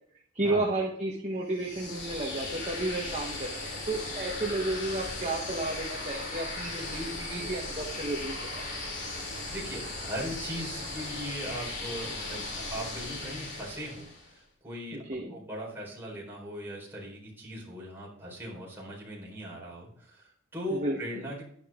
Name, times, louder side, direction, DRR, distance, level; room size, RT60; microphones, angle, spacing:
voice 1, 0.3-8.7 14.9-15.3 20.7-21.0, right 2 dB, 30° right, -2 dB, 1.3 m, -32 dB
sound 1, 1.5-14.3, left 2 dB, 50° left, 2.9 m, -37 dB
voice 2, 9.5-15.0 15.3-21.4, equal, 10° right, -5 dB, 4.5 m, -39 dB
11.0 x 10.5 x 3.8 m, 0.63 s
head